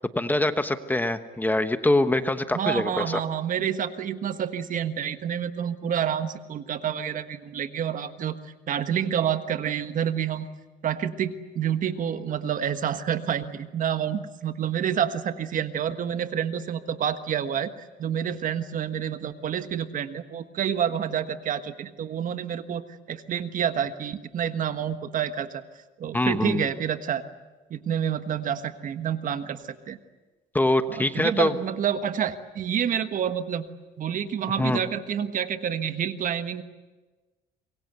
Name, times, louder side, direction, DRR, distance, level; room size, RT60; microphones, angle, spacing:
voice 1, 0.1-3.2 26.1-26.7 30.5-31.6 34.5-34.8, left 1 dB, 10° left, 10 dB, 1.1 m, -24 dB
voice 2, 2.5-10.5 10.8-17.7 18.0-22.8 23.1-25.6 26.0-27.2 27.7-30.0 30.9-33.7 34.0-36.6, right 9 dB, 50° right, 10 dB, 1.4 m, -28 dB
25.5 x 22.5 x 8.1 m, 1.2 s
cardioid pair, 110°, 17 cm